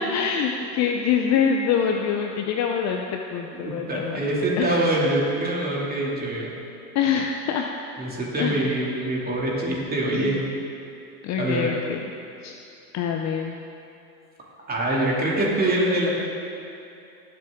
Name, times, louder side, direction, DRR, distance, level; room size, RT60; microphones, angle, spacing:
voice 1, 0.0-4.2 4.5-4.9 6.9-7.7 8.4-8.7 10.1-10.4 11.2-12.0 12.4-12.5 12.9-13.6, left 7 dB, 35° left, 3 dB, 0.7 m, -25 dB
voice 2, 3.5-6.5 8.0-10.4 11.4-11.7 14.7-16.1, right 1 dB, 20° right, -4 dB, 2.6 m, -24 dB
17.5 x 7.7 x 3.7 m, 2.7 s
hypercardioid pair, 115°, 48 cm